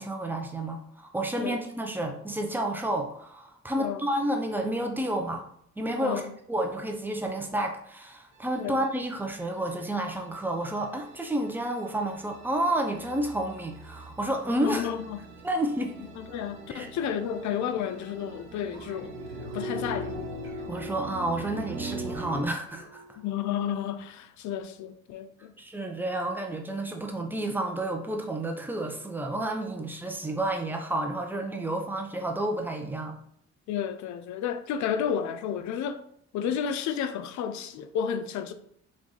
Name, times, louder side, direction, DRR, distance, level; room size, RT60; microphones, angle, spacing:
voice 1, 0.0-5.4 5.8-6.2 6.5-14.9 15.4-16.0 16.7-16.9 20.7-23.2 25.6-33.2, right 1 dB, 5° right, 0.6 m, -30 dB
sound 1, 8.4-22.5, right 1 dB, 80° right, 0.9 m, -41 dB
voice 2, 14.6-15.3 16.2-19.2 19.5-20.3 23.2-25.5 33.7-36.0 36.3-38.5, left 8 dB, 70° left, 0.5 m, -32 dB
sound 2, 18.7-23.5, right 3 dB, 40° right, 1.1 m, -51 dB
3.1 x 2.5 x 3.6 m
cardioid pair, 90°, 30 cm